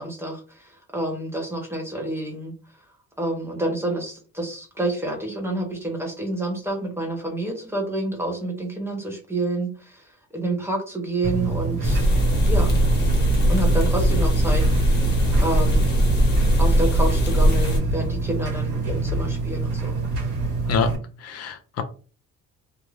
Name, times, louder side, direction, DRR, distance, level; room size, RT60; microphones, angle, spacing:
voice 1, 0.0-2.5 3.2-10.0 10.3-12.1 12.5-12.8 13.5-15.0 15.4-16.0 16.6-20.1, right 1 dB, 10° right, 1 dB, 0.6 m, -28 dB
sound 1, 11.2-21.0, right 3 dB, 65° right, 1.2 m, -26 dB
sound 2, 11.8-17.8, equal, 30° left, 1.0 m, -20 dB
voice 2, 21.2-21.8, left 6 dB, 50° left, 7 dB, 0.4 m, -25 dB
2.4 x 2.1 x 3.1 m, 0.37 s
cardioid pair, 145°, 32 cm